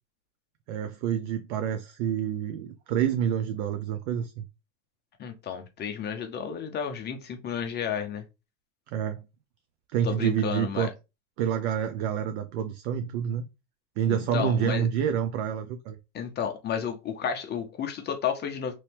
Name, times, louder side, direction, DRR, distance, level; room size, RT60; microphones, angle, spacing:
voice 1, 0.7-4.4 8.9-9.2 9.9-10.9 11.4-13.4 14.0-16.0, right 9 dB, 55° right, 0.6 m, -28 dB
voice 2, 5.2-8.2 10.0-10.9 14.1-14.9 16.1-18.7, left 7 dB, 25° left, 0.6 m, -32 dB
3.1 x 2.7 x 3.4 m
hypercardioid pair, 115°, 43 cm